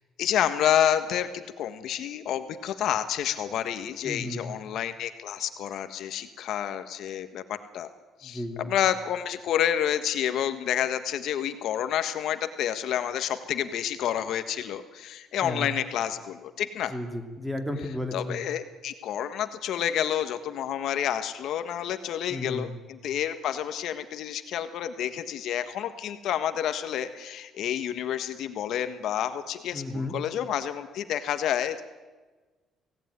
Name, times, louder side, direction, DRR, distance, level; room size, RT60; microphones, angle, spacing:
voice 1, 0.2-7.9 8.2-16.9 18.1-31.8, left 10 dB, 65° left, 10 dB, 1.5 m, -29 dB
voice 2, 4.0-4.6 8.2-8.7 15.4-15.7 16.9-18.4 22.3-22.7 29.7-30.1, left 1 dB, ahead, 6 dB, 2.9 m, -33 dB
24.0 x 18.0 x 9.7 m, 1.3 s
cardioid pair, 130°, 0 cm